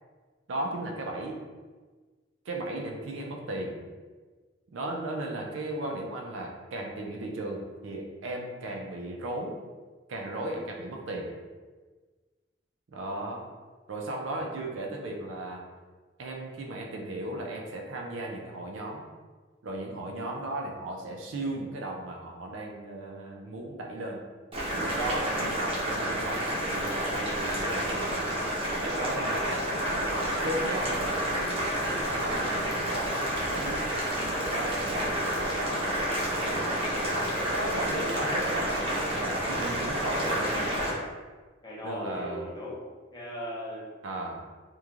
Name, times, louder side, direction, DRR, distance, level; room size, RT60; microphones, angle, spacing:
voice 1, 0.5-1.4 2.5-3.8 4.7-9.6 10.1-11.3 12.9-13.5 13.9-15.6 16.2-19.0 19.6-24.3 24.7-28.3 28.8-29.6 30.0-33.8 34.4-35.7 36.3-36.7 37.5-40.8 41.8-42.5 44.0-44.4, right 1 dB, 80° right, 0 dB, 0.4 m, -36 dB
Boiling, 24.5-40.9, equal, 30° right, 0.6 m, -29 dB
voice 2, 41.6-42.8 43.1-43.9, equal, 20° left, -6 dB, 0.6 m, -38 dB
3.0 x 2.2 x 2.4 m, 1.4 s
head